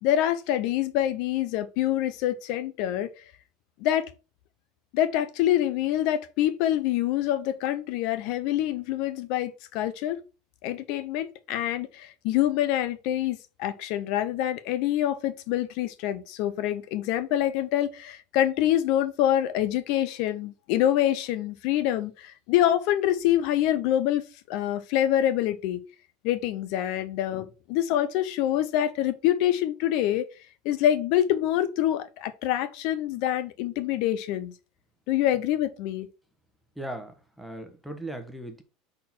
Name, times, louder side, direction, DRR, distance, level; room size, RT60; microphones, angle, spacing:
voice 1, 0.0-3.1 3.8-4.1 4.9-10.2 10.6-25.8 26.2-30.3 30.6-34.5 35.1-36.1, left 12 dB, 50° left, 0.7 m, -26 dB
voice 2, 36.8-38.6, right 1 dB, ahead, 1.1 m, -38 dB
6.3 x 4.3 x 6.0 m
supercardioid pair, 165°, 0 cm